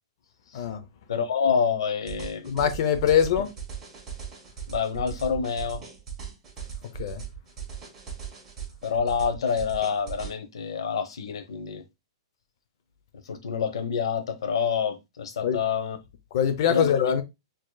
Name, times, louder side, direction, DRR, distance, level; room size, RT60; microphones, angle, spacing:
voice 1, 1.1-2.5 4.7-5.8 8.8-11.8 13.2-16.0 16.7-16.9, left 6 dB, 80° left, 0.9 m, -27 dB
sound 1, 2.1-10.3, right 7 dB, 15° right, 1.4 m, -38 dB
voice 2, 2.5-3.5 7.0-7.2 15.4-15.6 16.3-17.2, left 8 dB, 50° left, 0.6 m, -23 dB
4.6 x 2.9 x 2.3 m
hypercardioid pair, 150°, 3 cm